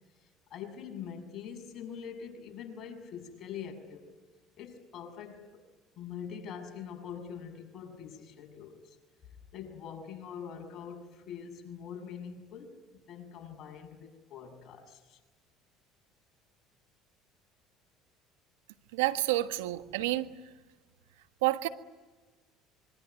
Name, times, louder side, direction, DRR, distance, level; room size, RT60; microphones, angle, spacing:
voice 1, 0.5-4.2 4.6-5.6 6.0-9.0 9.5-12.8 13.1-15.2, left 7 dB, 50° left, 7.4 m, -44 dB
voice 2, 18.9-20.3 21.4-21.7, right 16 dB, 90° right, 1.4 m, -29 dB
25.5 x 24.5 x 9.4 m
supercardioid pair, 85°, 0 cm